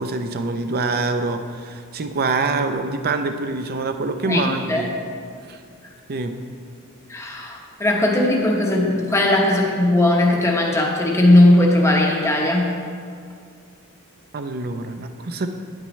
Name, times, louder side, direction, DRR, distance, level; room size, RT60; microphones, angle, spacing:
voice 1, 0.0-4.9 5.5-5.6 6.1-6.4 14.3-15.5, right 3 dB, 45° right, 7 dB, 0.5 m, -25 dB
voice 2, 4.2-4.9 7.1-12.7, left 1 dB, 15° left, -1 dB, 0.9 m, -18 dB
9.8 x 8.8 x 3.1 m, 2.2 s
head